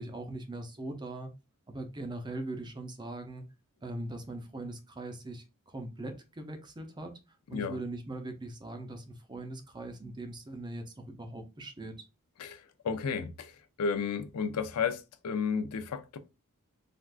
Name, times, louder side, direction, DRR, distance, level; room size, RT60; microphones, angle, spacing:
voice 1, 0.0-1.3 1.7-3.4 3.8-7.1 7.5-11.9, right 2 dB, 20° right, 0.5 m, -40 dB
voice 2, 12.4-13.5 13.8-16.2, left 6 dB, 80° left, 0.4 m, -33 dB
3.4 x 2.4 x 2.3 m
head